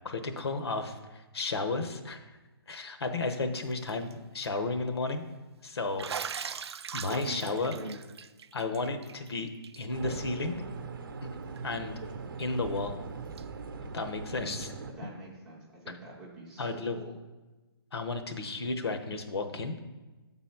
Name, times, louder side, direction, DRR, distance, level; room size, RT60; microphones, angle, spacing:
voice 1, 0.0-2.3 2.7-5.3 5.6-6.5 6.9-7.7 8.5-9.5 9.8-10.6 11.2-11.4 11.6-11.9 12.4-12.9 13.8-14.7 16.6-17.0 17.9-19.7, left 3 dB, 75° left, 7 dB, 1.0 m, -33 dB
Bathtub (filling or washing), 3.7-4.1 4.4-4.5 6.0-9.3 9.6-9.8 10.1-10.2 11.6-11.7 13.4-13.5, right 7 dB, 85° right, 0.4 m, -40 dB
voice 2, 7.1-8.0 15.0-17.1, right 1 dB, 5° right, -5 dB, 0.4 m, -44 dB
sound 1, 9.9-14.9, right 4 dB, 55° right, 0.7 m, -40 dB
7.4 x 4.0 x 5.8 m, 1.2 s
hypercardioid pair, 175°, 13 cm